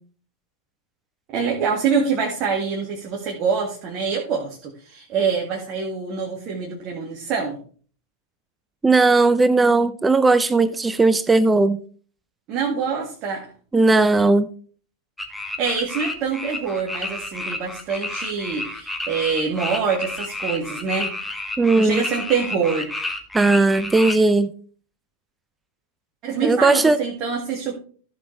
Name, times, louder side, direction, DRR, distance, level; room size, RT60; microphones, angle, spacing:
voice 1, 1.3-7.6 12.5-13.5 15.6-21.1 21.8-22.9 26.2-27.8, right 5 dB, 35° right, 1.9 m, -25 dB
voice 2, 8.8-11.8 13.7-14.5 21.6-22.0 23.3-24.5 26.4-27.0, right 3 dB, 10° right, 0.6 m, -17 dB
sound 1, 15.2-24.2, left 2 dB, 5° left, 1.3 m, -30 dB
14.5 x 6.2 x 3.3 m
figure-of-eight pair, 90°, 0 cm